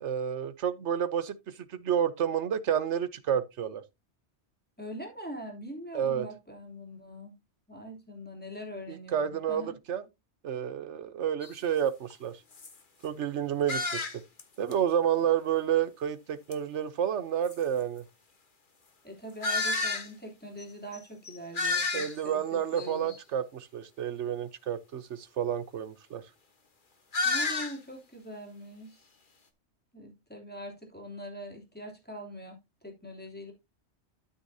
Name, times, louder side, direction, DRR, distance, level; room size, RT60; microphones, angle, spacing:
voice 1, 0.0-1.4 1.7-3.8 5.9-6.3 8.9-10.0 10.4-12.4 13.0-14.2 14.6-18.0 21.9-26.2, right 9 dB, 80° right, 1.2 m, -30 dB
voice 2, 4.8-7.3 7.7-9.7 19.0-23.1 27.2-29.0 29.9-32.6 32.8-33.5, equal, 10° left, 3.0 m, -43 dB
sound 1, 11.4-11.5 12.1-12.2 12.5-12.7 13.7-14.4 14.7-14.8 16.5-16.6 17.4-17.5 19.4-20.1 20.6-20.7 20.9-21.0 21.2-22.3 22.8-23.2 27.1-27.8, left 3 dB, 45° left, 1.5 m, -30 dB
12.5 x 6.4 x 2.7 m
omnidirectional pair, 1.2 m